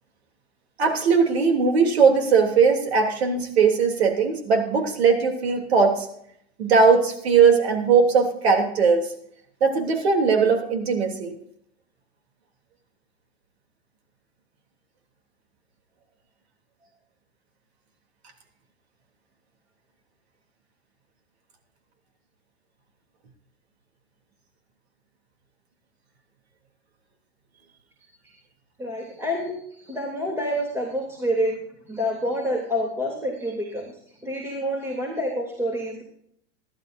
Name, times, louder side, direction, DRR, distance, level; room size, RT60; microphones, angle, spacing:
voice 1, 0.8-6.1 6.6-9.1 9.6-11.3, right 5 dB, 85° right, 3 dB, 3.2 m, -19 dB
voice 2, 28.8-31.6 31.8-36.0, equal, 10° right, -1 dB, 3.0 m, -28 dB
21.0 x 11.5 x 2.7 m, 0.70 s
hypercardioid pair, 110°, 31 cm